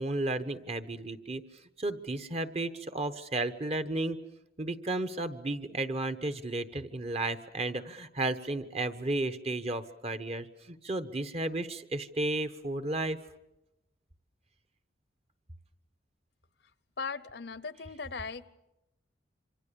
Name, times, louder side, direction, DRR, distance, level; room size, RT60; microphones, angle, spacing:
voice 1, 0.0-1.4 1.8-4.2 4.6-13.2, right 2 dB, 35° right, 11 dB, 1.1 m, -33 dB
voice 2, 17.0-18.5, left 4 dB, 60° left, 16 dB, 0.8 m, -38 dB
27.0 x 25.0 x 7.0 m, 0.91 s
head